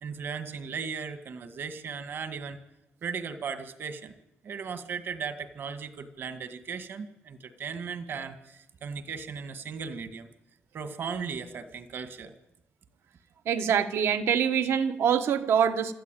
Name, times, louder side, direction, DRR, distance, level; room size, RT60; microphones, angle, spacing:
voice 1, 0.0-2.6 3.0-4.2 4.4-10.3 10.7-12.3, right 6 dB, 55° right, 10 dB, 1.8 m, -37 dB
voice 2, 13.5-15.9, right 8 dB, 75° right, 9 dB, 1.3 m, -24 dB
26.0 x 13.5 x 9.1 m, 0.92 s
cardioid pair, 145°, 4 cm